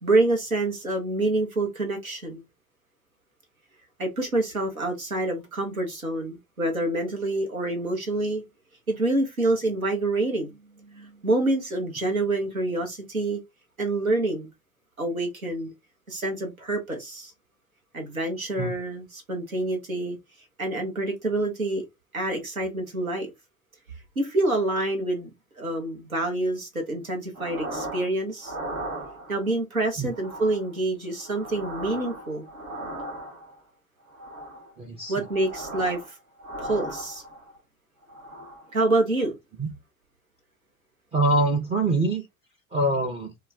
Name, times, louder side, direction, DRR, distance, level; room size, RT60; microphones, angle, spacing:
voice 1, 0.0-2.4 4.0-8.4 8.9-13.4 13.8-14.5 15.0-15.7 16.1-17.3 17.9-20.2 20.6-21.9 22.1-23.3 24.2-25.3 25.6-28.5 29.3-32.4 35.1-36.2 36.6-37.2 38.7-39.3, right 2 dB, 90° right, 0.8 m, -27 dB
sound 1, 27.3-28.1 28.4-29.5 30.1-30.7 31.1-33.6 34.1-34.7 35.1-36.1 36.4-37.6 38.0-38.7, right 1 dB, 65° right, 1.3 m, -37 dB
voice 2, 34.8-35.1 39.6-39.7 41.1-42.2 42.7-43.3, right 2 dB, 15° right, 0.4 m, -24 dB
2.3 x 2.2 x 3.3 m
figure-of-eight pair, 70°, 41 cm